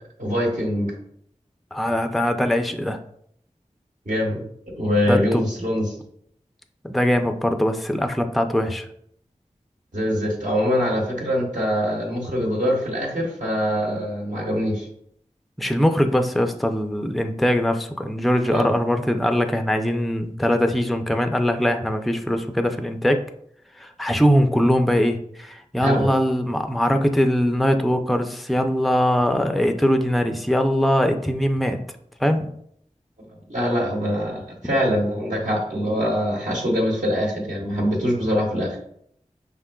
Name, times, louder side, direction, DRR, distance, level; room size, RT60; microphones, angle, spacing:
voice 1, 0.2-0.9 4.0-5.8 9.9-14.9 18.5-18.7 25.8-26.1 33.5-38.8, equal, 75° right, -3 dB, 1.2 m, -23 dB
voice 2, 1.7-3.0 5.1-5.4 6.8-8.9 15.6-23.2 23.8-31.8 32.2-32.5, equal, ahead, 6 dB, 0.4 m, -21 dB
5.3 x 3.6 x 2.2 m, 0.68 s
wide cardioid pair, 60°, 13 cm